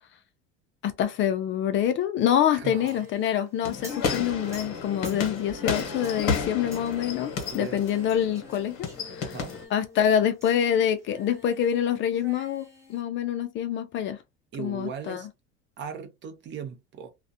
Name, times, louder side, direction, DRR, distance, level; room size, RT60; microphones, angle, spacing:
voice 1, 0.8-9.3 9.7-14.2 14.6-15.2, left 9 dB, 40° left, 0.4 m, -26 dB
voice 2, 2.5-3.1 7.5-7.8 9.2-9.6 14.5-15.3 15.8-17.1, right 7 dB, 40° right, 0.6 m, -38 dB
Singing, 2.7-11.8 12.1-13.0, left 1 dB, 10° right, 0.8 m, -48 dB
sound 1, 3.6-9.6, left 5 dB, 70° left, 0.9 m, -32 dB
2.4 x 2.1 x 2.6 m
cardioid pair, 140°, 30 cm